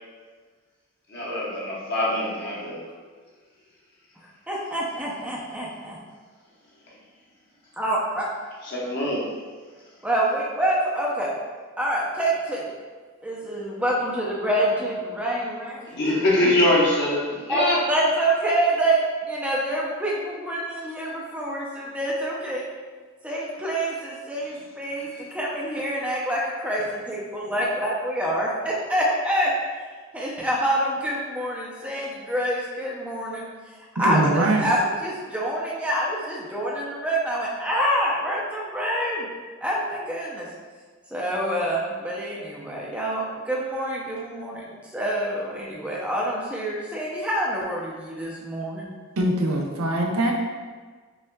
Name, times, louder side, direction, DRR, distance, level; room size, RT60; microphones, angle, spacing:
voice 1, 1.1-2.8 8.6-9.3 15.8-17.8, left 1 dB, 50° left, -5 dB, 0.9 m, -23 dB
voice 2, 4.5-6.0 7.8-8.3 10.0-11.3 11.8-12.7 13.2-15.8 17.5-22.7 23.2-26.8 27.1-29.5 30.1-33.5 33.8-39.3 39.6-40.5 41.1-48.9, right 1 dB, 5° right, -4 dB, 0.5 m, -26 dB
voice 3, 34.0-34.7 49.2-50.3, right 1 dB, 75° right, 0 dB, 0.6 m, -22 dB
5.4 x 2.4 x 2.2 m, 1.5 s
head